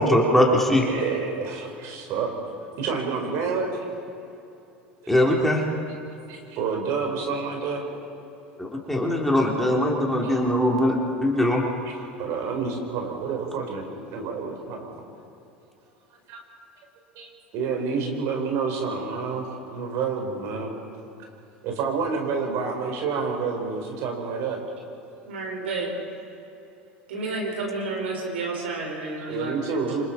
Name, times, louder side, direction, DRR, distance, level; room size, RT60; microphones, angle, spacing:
voice 1, 0.0-0.8 5.1-5.6 8.6-11.6, left 1 dB, 5° left, -2 dB, 3.8 m, -21 dB
voice 2, 0.8-2.3 2.8-3.8 5.0-5.3 6.3-7.9 10.2-10.4 11.8-14.9 16.3-16.4 17.1-20.7 21.6-24.6 29.2-30.0, right 5 dB, 55° right, 2 dB, 4.8 m, -29 dB
voice 3, 25.3-26.0 27.1-29.9, right 3 dB, 75° right, -1 dB, 5.6 m, -31 dB
27.5 x 26.0 x 4.6 m, 2.9 s
hypercardioid pair, 75°, 6 cm